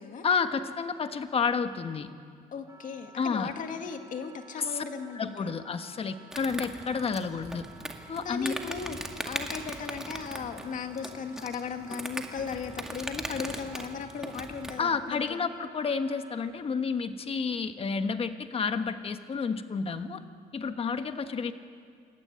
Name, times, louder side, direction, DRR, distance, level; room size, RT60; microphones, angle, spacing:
voice 1, 0.2-2.1 3.2-3.5 4.7-4.8 5.1-7.6 8.1-8.5 14.8-20.2 20.5-21.5, left 5 dB, 35° left, 9 dB, 1.4 m, -30 dB
voice 2, 2.5-5.5 8.2-15.4 21.0-21.2, left 6 dB, 50° left, 6 dB, 2.2 m, -37 dB
Wind instrument woodwind instrument, 2.6-16.7, right 3 dB, 20° right, 2.2 m, -54 dB
Insect, 6.3-14.8, right 1 dB, 5° right, 2.0 m, -39 dB
26.5 x 14.0 x 9.5 m, 2.1 s
cardioid pair, 110°, 17 cm